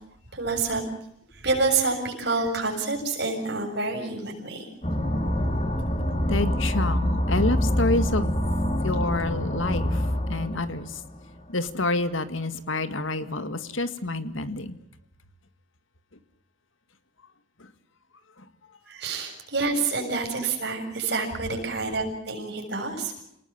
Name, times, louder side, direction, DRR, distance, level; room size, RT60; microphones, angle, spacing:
voice 1, 0.3-0.8 1.3-4.7 9.1-9.2 18.9-23.2, right 3 dB, 55° right, 3 dB, 7.3 m, -28 dB
sound 1, 4.8-11.4, equal, 30° left, 3.0 m, -26 dB
voice 2, 6.3-8.3 8.8-10.0 10.3-10.9 11.5-14.8, left 2 dB, 80° left, 10 dB, 2.0 m, -28 dB
29.0 x 19.5 x 7.3 m, 0.74 s
head